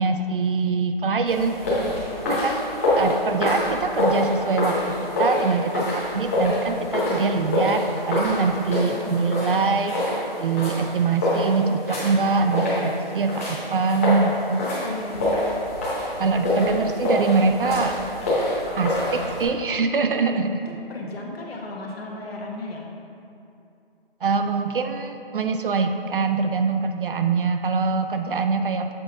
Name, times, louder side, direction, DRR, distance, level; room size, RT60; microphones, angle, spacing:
voice 1, 0.0-1.6 2.3-2.7 3.0-14.6 16.2-18.0 18.8-20.6 24.2-28.9, right 4 dB, 65° right, 7 dB, 0.4 m, -24 dB
sound 1, 1.3-19.4, left 1 dB, 15° left, 0.9 m, -26 dB
voice 2, 1.4-1.9 8.2-8.5 14.8-15.4 20.7-22.9, left 2 dB, 85° left, 0 dB, 1.2 m, -35 dB
7.6 x 4.6 x 3.7 m, 2.7 s
hypercardioid pair, 180°, 30 cm